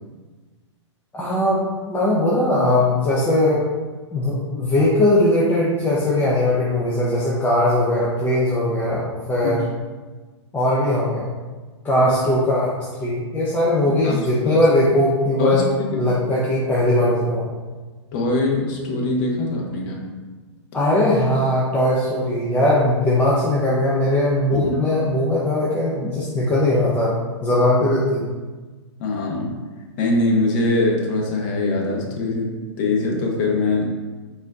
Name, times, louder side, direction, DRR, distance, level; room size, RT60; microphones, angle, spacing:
voice 1, 1.1-3.6 4.1-9.6 10.5-11.2 11.8-15.6 15.9-17.5 20.7-27.1 27.4-28.3, left 1 dB, 10° left, -7 dB, 0.6 m, -19 dB
voice 2, 14.0-14.6 15.4-16.1 18.1-20.0 24.5-24.9 26.0-26.1 29.0-29.6 30.0-32.5 32.8-33.9, left 2 dB, 40° left, 0 dB, 1.0 m, -22 dB
4.2 x 2.7 x 3.5 m, 1.3 s
hypercardioid pair, 130°, 15 cm